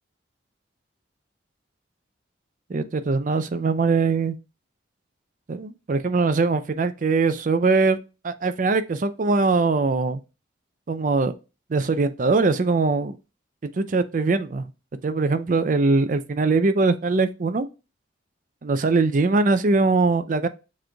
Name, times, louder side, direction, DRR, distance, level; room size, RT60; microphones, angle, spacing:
voice 1, 2.7-4.4 5.5-8.0 8.2-10.2 10.9-11.3 11.7-13.2 13.6-14.7 15.0-17.7 18.6-20.5, right 3 dB, 45° right, 0.4 m, -21 dB
7.3 x 3.1 x 2.3 m
head